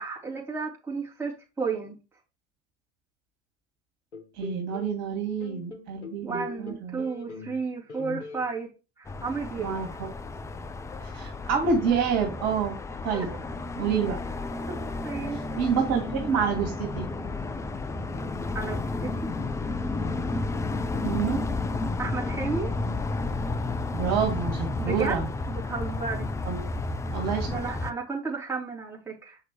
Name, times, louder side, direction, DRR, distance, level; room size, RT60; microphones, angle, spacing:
voice 1, 0.0-2.0 6.2-8.7 9.0-9.8 13.1-13.3 14.7-15.4 18.5-19.3 22.0-22.7 24.8-25.2 25.5-26.3 27.5-29.4, right 4 dB, 5° right, 3.7 m, -33 dB
sound 1, 4.1-5.0 5.4-7.6 7.9-8.5, left 4 dB, 70° left, 1.6 m, -40 dB
voice 2, 4.3-7.0 9.6-10.1 11.0-12.8 13.0-13.3 13.7-14.2 15.6-17.1 21.0-21.4 23.9-25.2 26.5-26.7 27.1-27.5, right 6 dB, 45° right, 2.5 m, -28 dB
sound 2, 9.1-27.9, left 3 dB, 10° left, 0.4 m, -32 dB
7.1 x 5.8 x 3.3 m
figure-of-eight pair, 75°, 36 cm